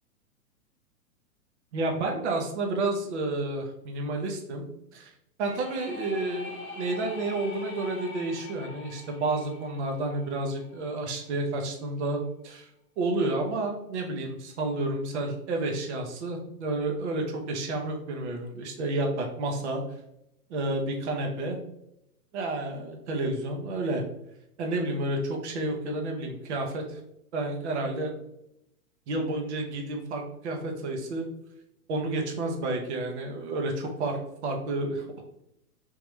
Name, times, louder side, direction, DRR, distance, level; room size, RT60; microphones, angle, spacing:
voice 1, 1.7-4.6 4.9-5.1 5.4-12.7 13.0-19.8 20.5-21.6 22.3-24.0 24.6-27.0 27.3-28.1 29.1-31.3 31.9-35.2, right 2 dB, 50° right, 2 dB, 0.9 m, -30 dB
sound 1, 5.4-11.1, left 3 dB, 5° left, 0.3 m, -43 dB
3.6 x 2.8 x 3.1 m, 0.81 s
figure-of-eight pair, 115°, 45 cm